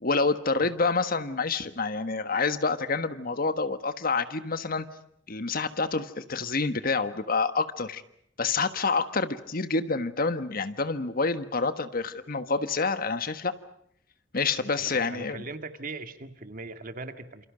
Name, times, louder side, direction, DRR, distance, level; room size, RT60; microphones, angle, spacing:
voice 1, 0.0-4.9 5.3-8.0 8.4-13.5 14.3-15.4, left 4 dB, 50° left, 11 dB, 1.5 m, -28 dB
voice 2, 14.7-17.5, right 3 dB, 50° right, 8 dB, 2.0 m, -40 dB
28.5 x 28.0 x 5.1 m, 0.71 s
head